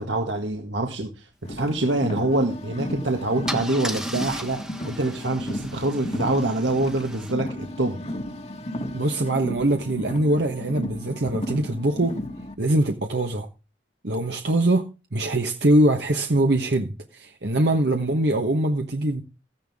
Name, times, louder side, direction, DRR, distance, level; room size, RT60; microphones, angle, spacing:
voice 1, 0.0-4.6 4.8-8.0, right 2 dB, 85° right, 1.8 m, -25 dB
Car, 1.4-12.5, equal, 35° left, 1.5 m, -34 dB
Car / Engine starting / Idling, 2.7-2.9 3.5-7.3, equal, 5° right, 1.1 m, -36 dB
voice 2, 8.9-12.2 12.6-13.5 14.0-19.2, right 1 dB, 65° right, 1.2 m, -23 dB
14.5 x 10.5 x 3.6 m
head